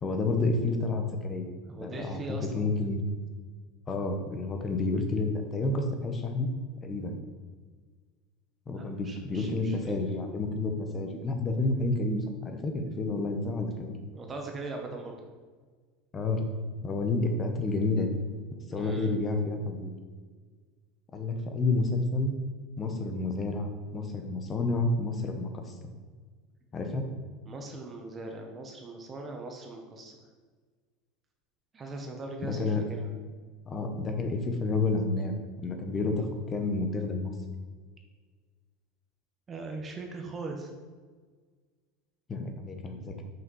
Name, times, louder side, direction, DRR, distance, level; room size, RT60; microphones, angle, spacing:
voice 1, 0.0-1.5 1.8-3.0 3.9-6.5 6.8-7.2 8.7-14.0 16.1-16.4 16.8-18.2 18.5-19.9 21.1-22.3 22.8-25.5 26.7-27.1 32.4-32.8 33.7-35.3 35.6-37.3 42.3-43.2, left 3 dB, 20° left, 5 dB, 1.0 m, -30 dB
voice 2, 1.6-2.7 8.7-9.9 14.1-15.2 18.7-19.1 27.5-30.2 31.7-33.1 39.5-40.7, right 3 dB, 20° right, 2 dB, 0.9 m, -40 dB
6.1 x 5.8 x 5.4 m, 1.5 s
supercardioid pair, 150°, 0 cm